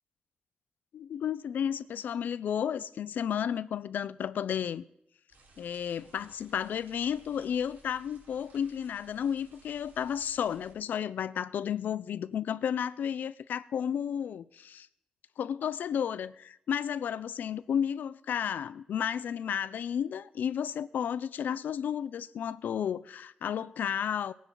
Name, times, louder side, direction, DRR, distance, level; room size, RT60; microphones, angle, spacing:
voice 1, 0.9-4.8 5.6-14.9 15.4-24.3, left 8 dB, 90° left, 0.6 m, -32 dB
sound 1, 5.3-10.7, right 3 dB, 80° right, 4.5 m, -59 dB
22.5 x 9.5 x 4.0 m
wide cardioid pair, 155°, 3 cm